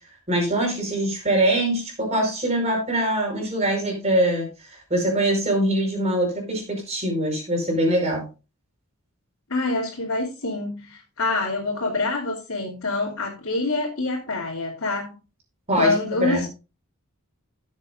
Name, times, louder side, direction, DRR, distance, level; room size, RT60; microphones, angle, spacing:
voice 1, 0.3-8.2 15.7-16.4, right 1 dB, 30° right, 0 dB, 4.8 m, -23 dB
voice 2, 9.5-15.1 15.8-16.5, left 3 dB, 70° left, -5 dB, 2.9 m, -26 dB
16.0 x 7.3 x 2.6 m, 0.31 s
head